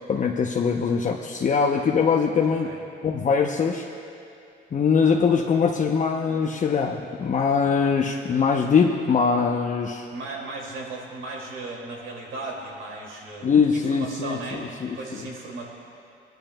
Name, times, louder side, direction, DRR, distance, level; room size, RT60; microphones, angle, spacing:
voice 1, 0.1-2.7 3.0-3.8 4.7-10.1 13.4-15.0, left 5 dB, 40° left, 0 dB, 0.7 m, -22 dB
voice 2, 10.1-14.7 14.9-15.7, right 3 dB, 80° right, -2 dB, 2.3 m, -36 dB
19.5 x 12.0 x 2.2 m, 2.6 s
cardioid pair, 90°, 20 cm